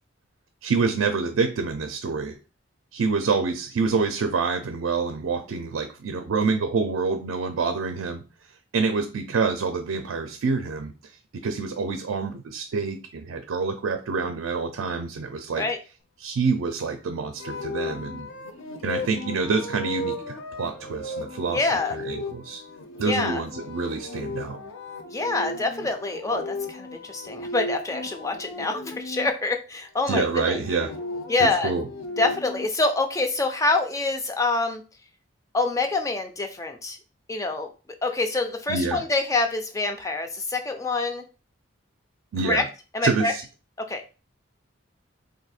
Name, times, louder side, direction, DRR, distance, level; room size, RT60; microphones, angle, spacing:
voice 1, 0.6-2.3 2.9-8.2 8.7-10.9 11.3-15.7 16.2-18.3 18.8-21.6 21.9-22.6 23.0-24.6 30.1-30.9 31.4-31.8 38.7-39.0 42.3-42.6 43.0-43.4, right 4 dB, 90° right, 6 dB, 0.4 m, -27 dB
sound 1, 17.4-29.3 30.4-32.7, left 1 dB, 85° left, 0.5 m, -36 dB
voice 2, 21.5-22.0 23.0-23.4 25.1-30.6 31.3-31.7 32.2-34.8 35.5-37.0 37.3-37.7 38.0-41.2 42.4-42.6 42.9-43.3 43.9-44.0, left 3 dB, 15° left, 5 dB, 0.3 m, -26 dB
2.6 x 2.4 x 4.1 m, 0.34 s
head